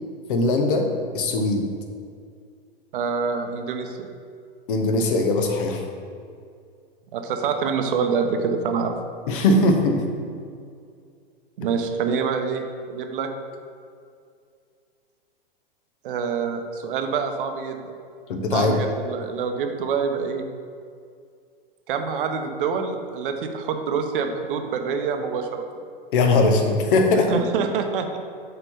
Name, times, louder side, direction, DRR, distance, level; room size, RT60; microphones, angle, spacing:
voice 1, 0.3-0.9 1.1-1.7 4.7-5.8 9.3-10.0 18.3-18.8 26.1-27.3, left 2 dB, 60° left, 4 dB, 1.0 m, -20 dB
voice 2, 2.9-4.1 7.1-8.9 11.6-13.3 16.0-17.8 18.5-20.5 21.9-25.7 27.3-28.2, right 5 dB, 65° right, 5 dB, 0.8 m, -26 dB
5.6 x 4.0 x 5.5 m, 2.3 s
hypercardioid pair, 110°, 29 cm